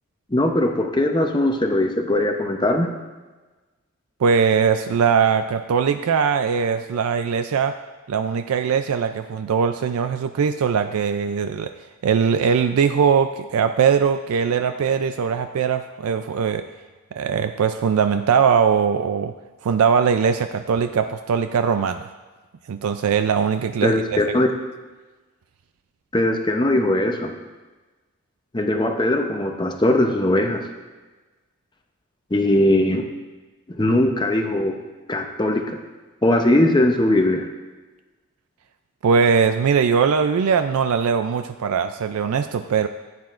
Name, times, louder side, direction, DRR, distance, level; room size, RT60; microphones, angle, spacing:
voice 1, 0.3-3.0 23.8-24.5 26.1-27.3 28.5-30.7 32.3-33.1 33.8-34.8 35.1-35.8 36.2-37.5, left 1 dB, 20° left, 4 dB, 0.7 m, -20 dB
voice 2, 4.2-7.7 8.1-11.7 12.0-16.6 17.1-19.3 19.6-22.1 22.7-24.2 39.0-42.9, right 6 dB, 80° right, 9 dB, 0.4 m, -20 dB
14.5 x 9.5 x 2.5 m, 1.2 s
head